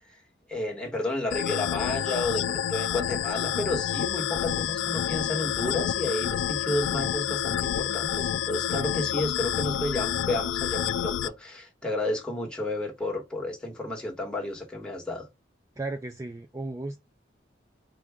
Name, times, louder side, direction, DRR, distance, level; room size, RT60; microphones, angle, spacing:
voice 1, 0.5-15.3, left 2 dB, 5° left, 1.4 m, -31 dB
sound 1, 1.3-11.3, left 10 dB, 85° left, 0.3 m, -29 dB
voice 2, 15.8-17.0, right 2 dB, 15° right, 0.4 m, -34 dB
4.6 x 2.5 x 3.5 m
head